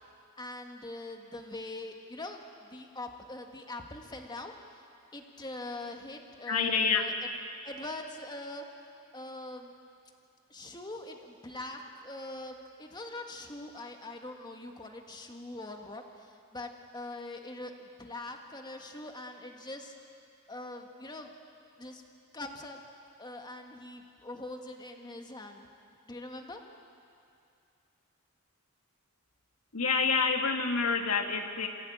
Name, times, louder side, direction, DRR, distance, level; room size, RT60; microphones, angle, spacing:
voice 1, 0.4-2.4 2.7-4.5 5.1-7.1 7.6-8.7 9.1-9.7 10.5-12.5 12.8-17.7 18.0-19.9 20.5-21.3 21.8-22.0 22.3-22.8 23.2-25.7 26.1-26.6, left 2 dB, 20° left, 3 dB, 1.7 m, -42 dB
voice 2, 6.5-7.1 29.7-31.7, left 5 dB, 85° left, 4 dB, 2.0 m, -27 dB
27.5 x 16.5 x 8.8 m, 2.5 s
head